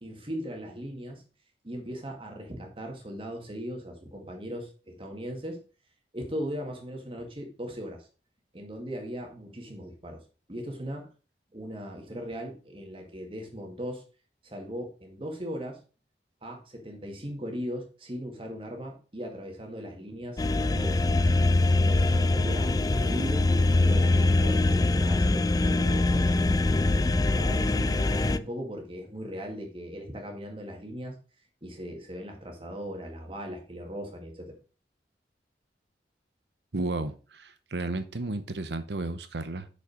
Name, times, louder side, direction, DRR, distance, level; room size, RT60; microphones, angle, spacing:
voice 1, 0.0-1.2 1.6-5.6 6.1-8.1 8.5-10.2 10.5-11.1 11.5-14.0 14.4-15.8 16.4-21.0 21.7-26.6 27.0-31.2 31.6-34.6, equal, 30° right, 2 dB, 1.9 m, -38 dB
sound 1, 20.4-28.4, left 2 dB, 20° left, 0.3 m, -23 dB
voice 2, 36.7-39.7, right 2 dB, 75° right, 11 dB, 0.9 m, -33 dB
6.5 x 5.5 x 5.0 m, 0.35 s
head